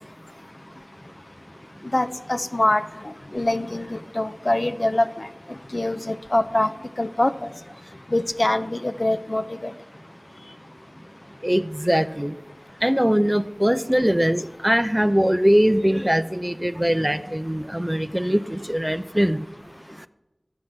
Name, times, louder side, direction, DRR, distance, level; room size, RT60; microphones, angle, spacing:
voice 1, 1.9-5.3 5.7-6.7 7.0-7.5 8.1-9.7, left 1 dB, 50° left, 10 dB, 0.5 m, -24 dB
voice 2, 11.4-12.3 12.8-19.4, equal, 15° right, 12 dB, 0.5 m, -21 dB
12.5 x 5.7 x 7.9 m, 1.0 s
wide cardioid pair, 40°, 0 cm